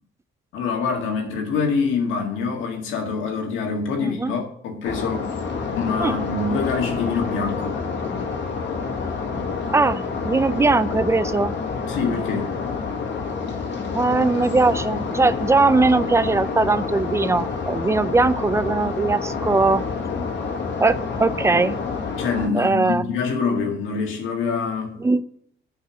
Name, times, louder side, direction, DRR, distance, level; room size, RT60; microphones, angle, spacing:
voice 1, 0.5-5.3 5.8-7.8 11.9-12.5 22.2-25.0, left 5 dB, 85° left, 1.7 m, -25 dB
voice 2, 4.0-4.3 6.0-6.2 9.7-11.6 13.9-19.8 20.8-21.8 22.5-23.1 25.0-25.2, right 3 dB, 15° right, 0.4 m, -20 dB
sound 1, 4.8-22.5, left 5 dB, 65° left, 1.7 m, -28 dB
6.0 x 5.5 x 7.0 m
cardioid pair, 90°, 20 cm